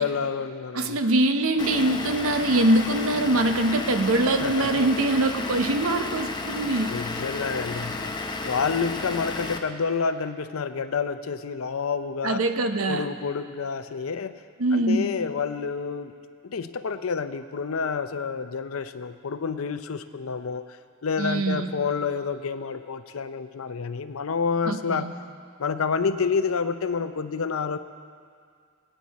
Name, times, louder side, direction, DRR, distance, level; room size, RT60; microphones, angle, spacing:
voice 1, 0.0-1.0 4.4-4.7 6.9-8.1 8.4-12.4 12.9-14.4 14.7-16.1 16.4-25.1 25.6-27.8, left 5 dB, 80° left, 11 dB, 0.6 m, -29 dB
voice 2, 0.7-7.0 12.2-13.1 14.6-15.1 21.2-21.7 24.6-25.1, right 1 dB, 80° right, 7 dB, 0.8 m, -23 dB
Vehicle / Engine, 1.6-9.6, left 3 dB, 20° left, 0.8 m, -32 dB
21.0 x 9.1 x 4.1 m, 2.2 s
head